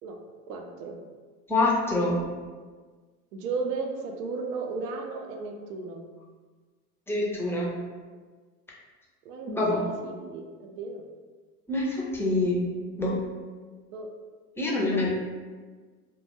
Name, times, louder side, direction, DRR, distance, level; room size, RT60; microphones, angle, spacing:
voice 1, 0.5-1.0 3.3-6.1 9.2-11.0 13.9-14.1 14.9-15.1, right 4 dB, 85° right, 2 dB, 0.5 m, -35 dB
voice 2, 1.5-2.2 7.1-7.7 9.5-9.8 11.7-12.6 13.0-13.1 14.6-15.1, left 2 dB, 5° left, -5 dB, 0.4 m, -25 dB
2.3 x 2.2 x 2.8 m, 1.4 s
hypercardioid pair, 85°, 46 cm